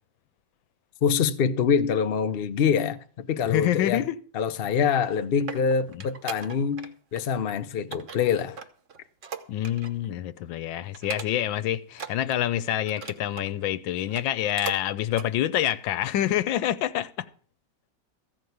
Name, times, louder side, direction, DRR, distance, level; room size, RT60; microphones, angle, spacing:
voice 1, 1.0-4.0 4.3-8.6, left 6 dB, 65° left, 0.5 m, -25 dB
voice 2, 3.4-4.2 9.5-17.1, left 12 dB, 85° left, 1.5 m, -27 dB
sound 1, 4.9-6.9 7.2-7.5 7.9-10.1 10.4-10.6 10.9-11.6 11.9-13.5 14.0-14.8 15.1-15.3 15.8-15.9, right 6 dB, 50° right, 1.1 m, -39 dB
14.5 x 5.1 x 9.3 m
omnidirectional pair, 2.1 m